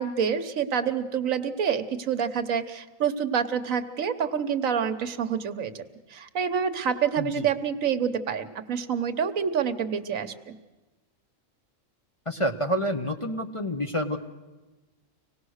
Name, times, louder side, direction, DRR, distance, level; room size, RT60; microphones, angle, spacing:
voice 1, 0.0-5.8 6.1-10.5, right 7 dB, 85° right, 9 dB, 1.4 m, -27 dB
voice 2, 7.2-7.5 12.3-14.2, equal, 30° left, 5 dB, 0.8 m, -28 dB
25.5 x 18.5 x 6.4 m, 1.2 s
omnidirectional pair, 1.4 m